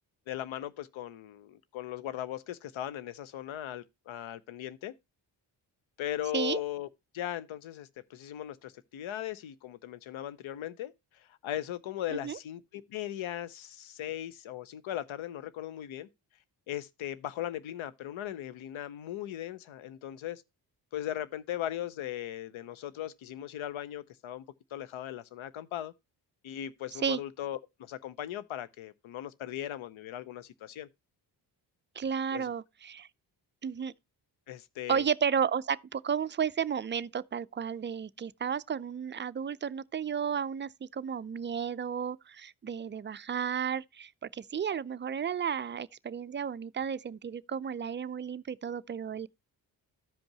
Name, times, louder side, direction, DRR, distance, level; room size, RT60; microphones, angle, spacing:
voice 1, 0.3-4.9 6.0-6.9 7.1-16.1 16.7-20.4 20.9-24.4 24.7-25.9 26.4-30.9 32.3-32.5 34.5-35.0, left 12 dB, 70° left, 0.8 m, -38 dB
voice 2, 32.0-33.1 33.6-33.9 34.9-49.3, right 7 dB, 25° right, 0.4 m, -33 dB
13.5 x 5.2 x 2.8 m
supercardioid pair, 45°, 48 cm